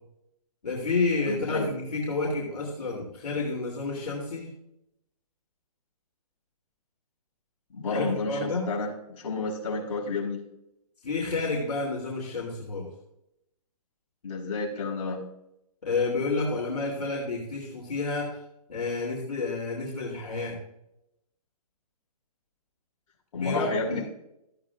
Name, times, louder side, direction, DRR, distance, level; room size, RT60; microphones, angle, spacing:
voice 1, 0.6-4.5 7.9-8.7 11.0-12.9 15.8-18.4 18.7-20.6 23.3-24.0, left 3 dB, 75° left, -2 dB, 3.2 m, -30 dB
voice 2, 1.3-1.7 7.7-10.4 14.2-15.2 23.3-24.0, left 3 dB, 55° left, -1 dB, 4.3 m, -30 dB
14.5 x 8.8 x 2.5 m, 0.82 s
hypercardioid pair, 135°, 20 cm